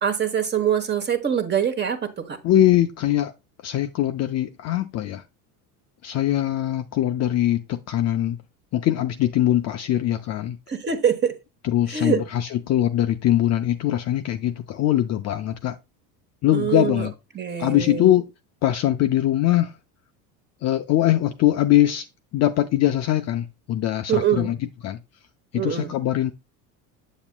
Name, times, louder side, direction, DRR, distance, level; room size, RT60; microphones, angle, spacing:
voice 1, 0.0-2.4 10.7-11.3 11.9-12.2 16.5-17.1 17.3-18.1 24.1-24.5 25.5-25.9, right 8 dB, 25° right, 1.1 m, -24 dB
voice 2, 2.4-3.3 3.6-5.2 6.0-8.4 8.7-10.6 11.6-15.8 16.4-17.1 17.6-18.3 18.6-19.7 20.6-22.0 22.3-24.6 24.8-25.0 25.5-26.3, left 13 dB, 35° left, 0.5 m, -22 dB
7.2 x 7.0 x 2.2 m
supercardioid pair, 100°, 46 cm